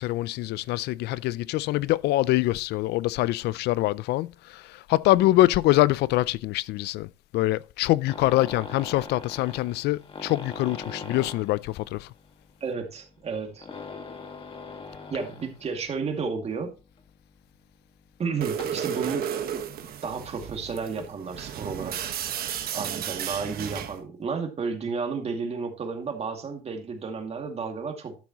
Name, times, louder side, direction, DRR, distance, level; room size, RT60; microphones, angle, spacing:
voice 1, 0.0-12.1, left 17 dB, 80° left, 0.4 m, -24 dB
sound 1, 8.1-15.9 16.2-16.4 17.0-17.1 17.4-17.5 18.5-19.1 20.3-20.5 20.9-21.4 22.1-22.2 22.5-22.6 22.8-22.9, left 4 dB, 30° left, 1.8 m, -41 dB
voice 2, 12.6-13.7 15.1-16.7 18.2-19.7 20.0-22.1 22.7-28.2, right 5 dB, 40° right, 2.3 m, -32 dB
sound 2, 18.4-24.0, right 9 dB, 65° right, 1.3 m, -33 dB
12.0 x 7.0 x 3.0 m
cardioid pair, 110°, 17 cm